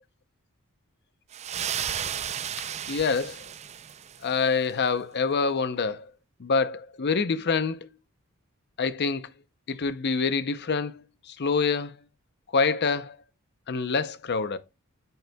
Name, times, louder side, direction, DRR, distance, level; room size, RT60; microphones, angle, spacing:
sound 1, 1.3-4.3, right 9 dB, 30° right, 0.4 m, -33 dB
voice 1, 2.9-3.4 4.2-6.1 6.4-7.9 8.8-9.2 9.7-11.9 12.5-13.2 13.7-14.6, left 5 dB, 50° left, 0.6 m, -26 dB
9.2 x 7.9 x 2.2 m
head